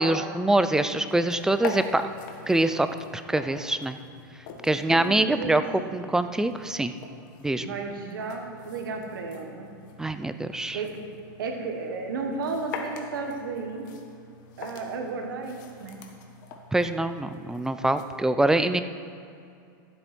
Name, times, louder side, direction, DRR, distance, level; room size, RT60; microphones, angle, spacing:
voice 1, 0.0-2.0 2.5-2.9 3.1-4.0 4.6-5.6 5.9-6.9 7.4-7.7 10.0-10.8 16.7-18.8, right 2 dB, 5° right, 10 dB, 0.4 m, -24 dB
sound 1, 1.0-18.0, left 4 dB, 65° left, 1.4 m, -44 dB
voice 2, 4.7-6.0 7.5-9.7 10.7-11.0 11.4-13.9 14.6-16.0, right 4 dB, 85° right, 3 dB, 1.6 m, -34 dB
13.0 x 8.0 x 4.4 m, 2.5 s
supercardioid pair, 125°, 11 cm